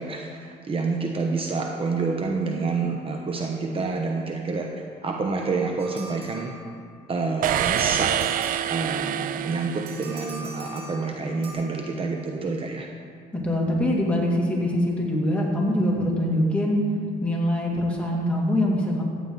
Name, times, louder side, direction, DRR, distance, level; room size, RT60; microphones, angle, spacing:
voice 1, 0.0-4.7 5.0-6.5 7.1-8.2 8.7-12.9, right 4 dB, 35° right, 1 dB, 1.0 m, -28 dB
sound 1, 5.8-6.9 7.4-9.1 9.9-11.5, right 2 dB, 75° right, 2.9 m, -42 dB
sound 2, 7.4-10.6, right 11 dB, 55° right, 0.4 m, -26 dB
voice 2, 13.3-16.8 17.2-19.0, left 1 dB, 5° left, -3 dB, 2.5 m, -23 dB
14.5 x 9.5 x 4.0 m, 2.1 s
cardioid pair, 110°, 17 cm